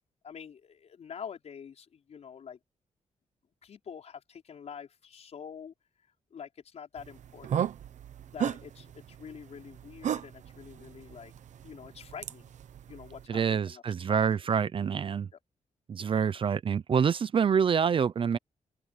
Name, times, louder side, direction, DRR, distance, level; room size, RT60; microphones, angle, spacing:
voice 1, 0.2-2.6 3.6-5.7 6.3-7.6 8.3-11.3 11.6-12.5 12.9-14.3 16.0-16.1, left 7 dB, 60° left, 5.3 m, -46 dB
sound 1, 7.0-13.3, right 9 dB, 75° right, 1.1 m, -36 dB
voice 2, 13.3-15.3 15.9-18.4, right 7 dB, 45° right, 0.6 m, -26 dB
wide cardioid pair, 145°, 13 cm